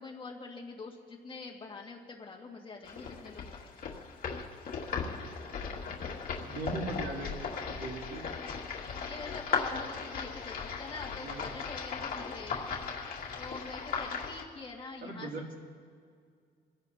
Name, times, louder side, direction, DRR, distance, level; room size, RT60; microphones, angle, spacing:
voice 1, 0.0-3.7 9.1-12.6 13.4-15.3, left 3 dB, 30° left, -1 dB, 2.0 m, -45 dB
sound 1, 2.8-14.4, left 5 dB, 55° left, 2.2 m, -37 dB
voice 2, 6.4-8.2 11.2-11.4 15.0-15.6, right 3 dB, 65° right, 0 dB, 2.6 m, -39 dB
26.5 x 17.0 x 2.8 m, 2.1 s
cardioid pair, 135°, 18 cm